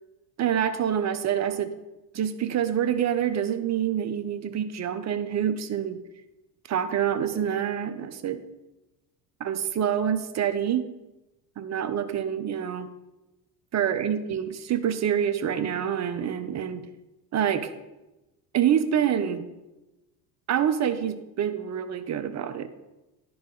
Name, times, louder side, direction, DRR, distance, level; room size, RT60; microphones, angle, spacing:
voice 1, 0.4-1.7 2.1-6.0 6.7-8.4 9.4-10.9 11.6-12.9 13.7-16.9 17.3-17.7 18.5-19.4 20.5-22.7, right 9 dB, 35° right, 11 dB, 0.8 m, -26 dB
10.5 x 4.8 x 4.0 m, 1.0 s
supercardioid pair, 85°, 49 cm